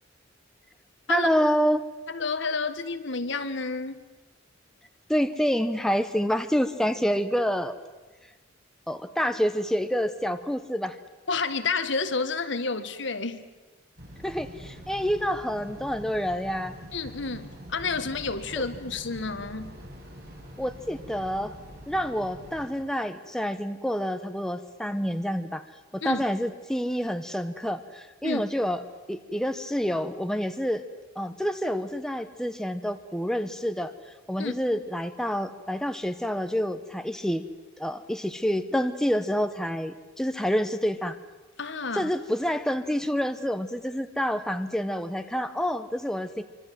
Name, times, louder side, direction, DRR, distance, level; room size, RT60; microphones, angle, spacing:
voice 1, 1.1-1.8 5.1-7.8 8.9-11.0 14.2-16.7 20.6-21.5 21.9-25.6 25.9-28.8 29.1-30.8 31.2-33.9 34.3-37.4 37.8-41.2 41.9-46.4, equal, 5° left, 8 dB, 1.0 m, -28 dB
voice 2, 2.1-4.0 11.3-13.4 16.9-19.8 26.0-26.2 28.2-28.4 34.4-34.5 41.6-42.1, left 4 dB, 65° left, 10 dB, 1.6 m, -30 dB
sound 1, 14.0-22.7, equal, 55° right, 6.7 m, -44 dB
25.0 x 25.0 x 7.7 m, 1.2 s
head